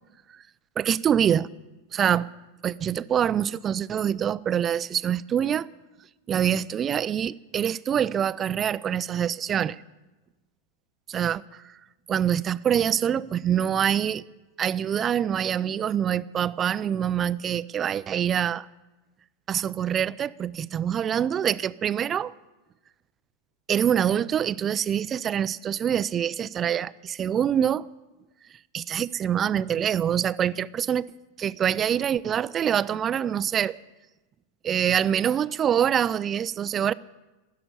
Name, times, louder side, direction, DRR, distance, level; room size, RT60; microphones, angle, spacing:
voice 1, 0.8-1.5 1.9-2.3 2.6-5.7 6.3-9.8 11.1-11.7 12.1-14.2 14.6-18.7 19.5-22.3 23.7-27.9 28.7-31.1 31.4-33.8 34.6-36.9, right 9 dB, 25° right, 0.4 m, -25 dB
16.0 x 6.9 x 9.8 m
figure-of-eight pair, 90°, 0 cm